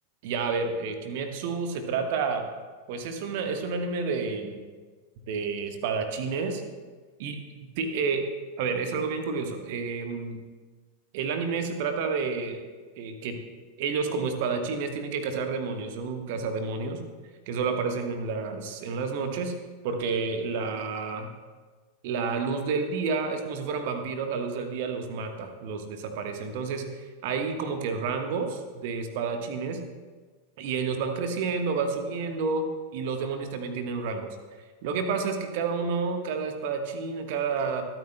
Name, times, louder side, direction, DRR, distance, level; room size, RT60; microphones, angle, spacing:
voice 1, 0.2-2.5 2.9-4.6 5.3-6.6 7.2-7.4 7.8-8.2 8.6-10.4 11.1-12.6 13.0-13.4 13.8-17.0 17.5-19.5 19.8-21.3 22.0-26.8 27.2-29.8 30.6-32.7 32.9-34.3 34.8-37.8, right 5 dB, 50° right, 6 dB, 1.2 m, -30 dB
23.0 x 9.1 x 2.2 m, 1.4 s
figure-of-eight pair, 90°, 0 cm